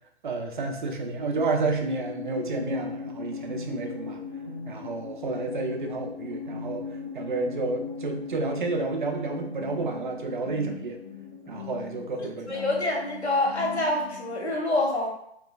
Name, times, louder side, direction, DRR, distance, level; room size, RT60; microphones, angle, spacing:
voice 1, 0.2-4.2 4.7-6.8 7.1-11.0 11.5-12.6, right 3 dB, 50° right, 3 dB, 0.6 m, -30 dB
sound 1, 1.1-14.5, left 5 dB, 15° left, 0.4 m, -38 dB
voice 2, 3.8-4.2 12.2-15.1, left 2 dB, 80° left, -1 dB, 1.2 m, -27 dB
3.7 x 3.0 x 2.4 m, 0.72 s
figure-of-eight pair, 130°, 33 cm